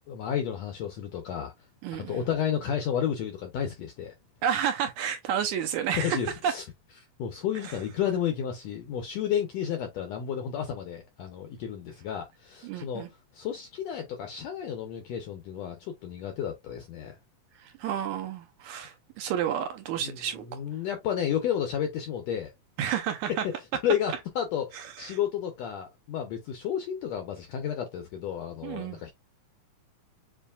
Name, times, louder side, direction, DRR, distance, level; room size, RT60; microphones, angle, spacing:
voice 1, 0.0-1.5 1.9-4.1 5.9-6.6 7.2-17.2 20.0-22.5 22.8-23.0 23.3-23.6 23.8-29.1, left 9 dB, 80° left, 1.5 m, -32 dB
voice 2, 1.8-2.2 4.4-6.2 6.4-6.5 7.6-7.8 12.6-13.1 17.6-20.4 22.8-23.5 24.7-25.2 28.6-29.0, right 9 dB, 80° right, 1.8 m, -31 dB
7.1 x 2.6 x 2.3 m
omnidirectional pair, 3.8 m